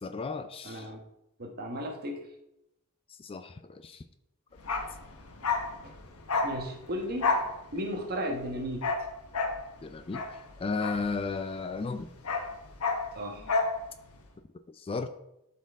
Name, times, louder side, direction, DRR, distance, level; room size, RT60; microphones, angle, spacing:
voice 1, 0.0-0.9 3.1-4.0 9.8-12.1 14.7-15.1, left 4 dB, 25° left, 10 dB, 0.4 m, -34 dB
voice 2, 0.6-1.0 1.4-2.3 5.8-5.9 6.4-7.3 7.7-8.9 13.1-13.5, equal, 45° right, 3 dB, 1.3 m, -35 dB
Bark, 4.6-11.6 11.9-13.8 14.1-14.2, left 3 dB, 75° left, 1.1 m, -31 dB
12.5 x 4.4 x 3.6 m, 0.85 s
head